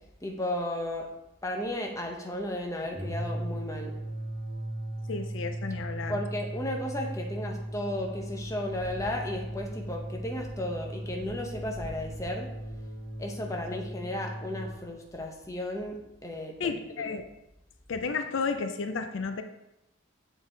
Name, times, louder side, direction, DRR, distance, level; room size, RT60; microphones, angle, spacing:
voice 1, 0.2-1.1 1.4-4.0 6.1-12.5 13.2-16.7 17.0-17.2, left 1 dB, 15° left, 1 dB, 0.7 m, -34 dB
sound 1, 2.8-14.8, right 1 dB, 35° right, 1.2 m, -37 dB
voice 2, 5.1-6.2 16.6-17.2 17.9-19.4, left 5 dB, 70° left, 8 dB, 0.5 m, -32 dB
7.2 x 4.0 x 3.8 m, 0.90 s
head